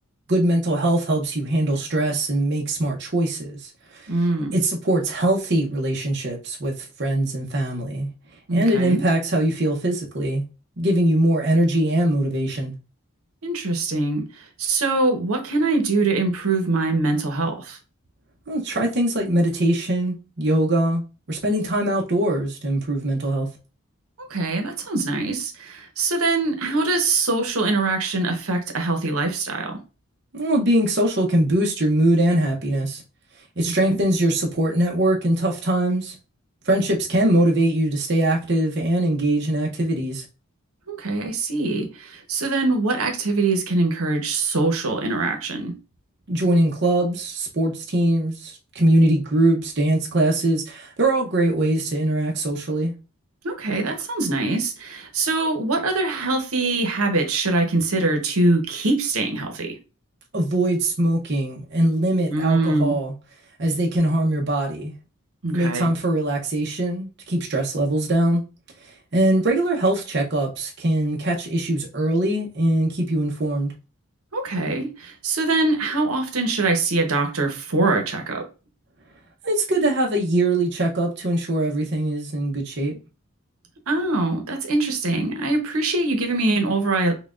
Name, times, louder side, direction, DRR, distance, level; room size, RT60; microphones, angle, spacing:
voice 1, 0.3-4.1 4.5-8.1 8.5-10.4 10.8-12.7 18.5-21.0 21.3-23.5 30.3-33.0 33.6-36.1 36.6-40.2 46.3-52.9 60.3-63.1 63.6-64.9 65.5-68.4 68.8-73.7 79.4-82.9, right 1 dB, 50° right, 0.7 m, -22 dB
voice 2, 4.1-4.5 8.5-9.0 13.4-17.8 24.2-29.8 33.7-34.0 40.9-45.8 53.4-59.8 62.3-63.0 65.4-65.9 74.3-78.5 83.9-87.2, right 2 dB, 80° right, 0.9 m, -23 dB
5.8 x 2.2 x 2.4 m
head